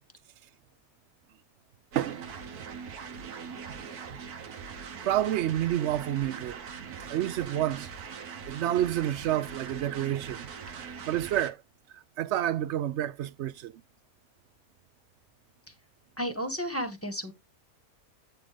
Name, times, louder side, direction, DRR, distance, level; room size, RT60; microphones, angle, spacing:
voice 1, 1.9-2.3 3.7-3.8 4.1-4.2 5.0-6.6 7.1-7.9 8.5-11.6 11.9-13.7, right 12 dB, 65° right, 0.7 m, -29 dB
sound 1, 1.9-11.5, right 6 dB, 90° right, 1.5 m, -42 dB
voice 2, 16.2-17.3, equal, 10° left, 1.3 m, -32 dB
9.1 x 3.8 x 5.0 m
omnidirectional pair, 1.6 m